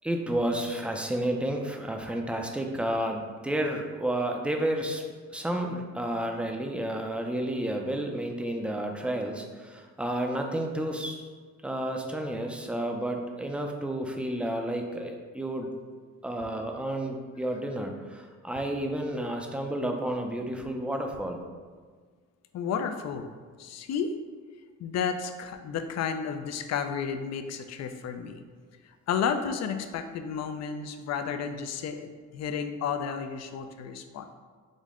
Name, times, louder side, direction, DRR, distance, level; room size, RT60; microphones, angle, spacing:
voice 1, 0.0-5.0 5.3-11.3 11.6-15.7 16.2-21.4, right 1 dB, 5° right, 3 dB, 0.4 m, -31 dB
voice 2, 22.5-23.3 23.6-24.1 24.8-28.4 29.1-34.4, left 6 dB, 60° left, 8 dB, 0.4 m, -32 dB
5.1 x 2.1 x 3.6 m, 1.6 s
cardioid pair, 90°, 30 cm